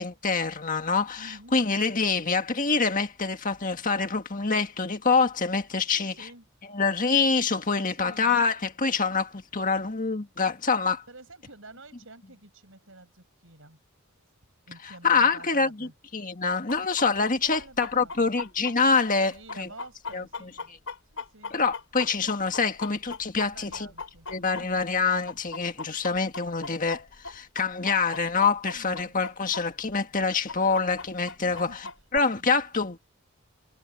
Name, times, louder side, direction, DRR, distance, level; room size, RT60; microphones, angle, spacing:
voice 1, 0.0-6.1 6.7-11.0 15.0-19.7 20.1-20.2 21.5-23.9 24.3-31.7 32.1-33.0, left 4 dB, 35° left, 1.7 m, -26 dB
voice 2, 1.2-1.5 5.8-6.7 7.8-8.4 9.0-9.1 11.1-13.8 14.7-15.9 17.1-18.3 19.3-20.7 21.1-21.6 22.2-22.4 23.4-24.7 28.7-29.2 31.4-32.5, right 2 dB, 60° right, 7.3 m, -49 dB
Chicken rooster, 16.7-25.0 25.3-29.6 29.9-30.0 30.5-32.2, left 4 dB, 60° left, 6.5 m, -38 dB
head